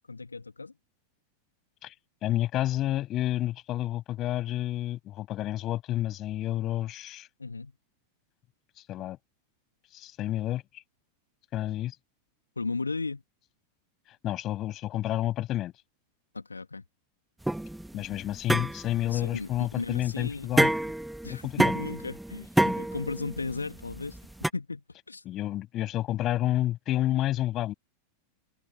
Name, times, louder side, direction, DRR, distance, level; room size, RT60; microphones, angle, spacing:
voice 1, 0.1-0.7 7.4-7.7 12.6-13.2 16.3-16.8 19.1-20.7 21.2-24.2 24.5-25.2, left 3 dB, 80° left, 2.4 m, -35 dB
voice 2, 2.2-7.3 8.9-9.2 9.9-10.8 11.5-12.0 14.2-15.7 17.9-20.7 21.3-21.7 25.3-27.7, left 14 dB, 35° left, 6.9 m, -30 dB
sound 1, 17.4-24.5, right 1 dB, 5° right, 1.6 m, -28 dB
figure-of-eight pair, 90°, 0 cm